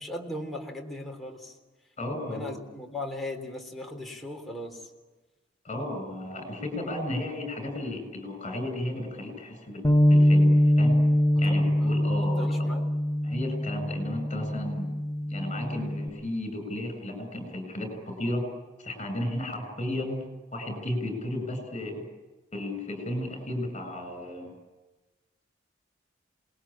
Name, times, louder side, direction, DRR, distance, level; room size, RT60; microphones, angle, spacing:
voice 1, 0.0-1.6 2.2-4.9 11.3-12.9, left 1 dB, ahead, 0 dB, 3.6 m, -38 dB
voice 2, 2.0-2.5 5.6-11.0 11.4-12.7 13.2-14.9 15.3-18.5 18.8-22.1 22.5-24.5, left 1 dB, 35° left, 7 dB, 7.3 m, -34 dB
Bass guitar, 9.8-16.1, equal, 15° left, 1.2 m, -23 dB
27.5 x 20.5 x 8.8 m, 1.2 s
head